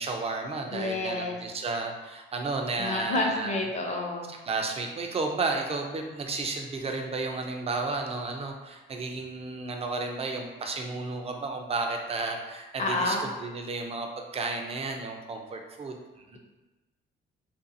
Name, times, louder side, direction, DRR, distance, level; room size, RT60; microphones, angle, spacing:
voice 1, 0.0-3.6 4.3-14.1 14.3-16.4, right 3 dB, 30° right, 2 dB, 0.4 m, -33 dB
voice 2, 0.7-1.4 2.8-4.3 12.8-13.2, left 2 dB, 35° left, 0 dB, 0.6 m, -29 dB
2.5 x 2.3 x 2.6 m, 1.1 s
cardioid pair, 90°, 20 cm